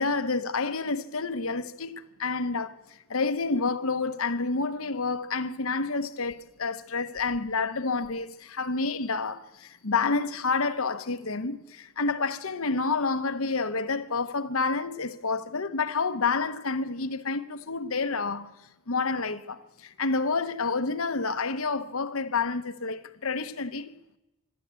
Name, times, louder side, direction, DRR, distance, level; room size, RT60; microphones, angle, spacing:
voice 1, 0.0-2.7 3.1-9.4 9.8-18.5 18.9-19.6 20.0-23.9, left 4 dB, 70° left, 1.1 m, -29 dB
25.0 x 13.0 x 8.4 m
head